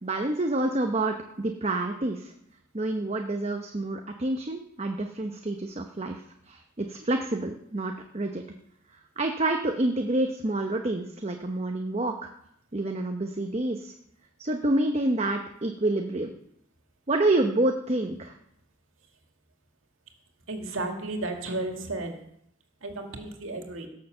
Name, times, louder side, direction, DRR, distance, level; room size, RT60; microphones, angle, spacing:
voice 1, 0.0-2.3 2.7-8.4 9.2-12.3 12.7-13.9 14.4-16.3 17.1-18.3, right 2 dB, 30° right, 4 dB, 0.8 m, -28 dB
voice 2, 20.5-22.1 22.8-23.9, right 2 dB, 85° right, 3 dB, 2.3 m, -33 dB
17.0 x 6.8 x 6.9 m, 0.73 s
head